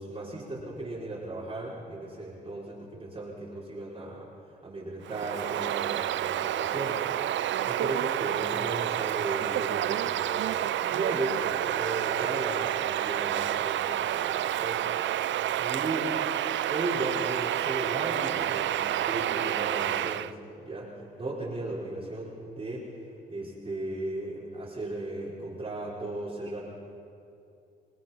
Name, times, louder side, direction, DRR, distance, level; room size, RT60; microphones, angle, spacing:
voice 1, 0.0-4.3 4.6-7.1 7.6-14.9 15.6-16.1 16.7-22.8 23.3-26.6, right 2 dB, 30° right, -7 dB, 4.6 m, -36 dB
Bird vocalization bird call bird song, 5.0-20.3, right 12 dB, 75° right, 0.5 m, -29 dB
24.5 x 19.0 x 5.8 m, 2.6 s
cardioid pair, 75°, 19 cm